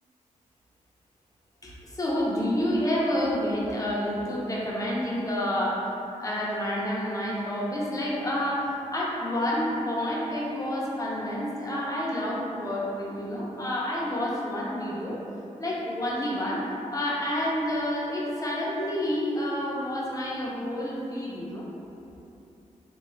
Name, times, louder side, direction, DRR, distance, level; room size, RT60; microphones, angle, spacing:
voice 1, 1.6-5.9 6.2-15.2 15.6-16.6 16.9-21.7, left 1 dB, 25° left, -5 dB, 0.7 m, -29 dB
3.2 x 2.9 x 2.2 m, 2.8 s
cardioid pair, 60°, 14 cm